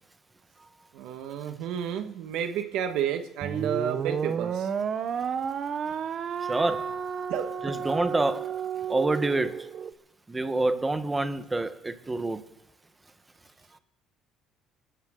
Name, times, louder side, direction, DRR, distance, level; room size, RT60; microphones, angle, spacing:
voice 1, 0.9-4.7 7.3-7.8, right 8 dB, 70° right, 6 dB, 1.5 m, -31 dB
sound 1, 3.4-9.9, right 7 dB, 35° right, 0.8 m, -32 dB
voice 2, 6.5-6.9 7.6-8.5 8.9-9.7 10.3-12.4, right 2 dB, 10° right, 9 dB, 1.0 m, -27 dB
28.0 x 13.5 x 3.8 m, 0.80 s
cardioid pair, 160°, 0 cm